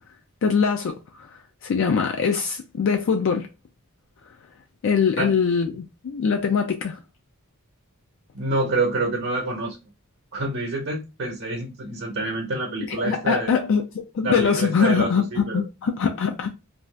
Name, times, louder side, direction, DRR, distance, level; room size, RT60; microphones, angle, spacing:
voice 1, 0.4-3.5 4.8-7.0 12.9-16.6, left 6 dB, 60° left, 0.4 m, -23 dB
voice 2, 8.3-9.8 10.3-13.6 14.2-15.6, right 2 dB, 60° right, 0.8 m, -27 dB
2.6 x 2.3 x 3.2 m
head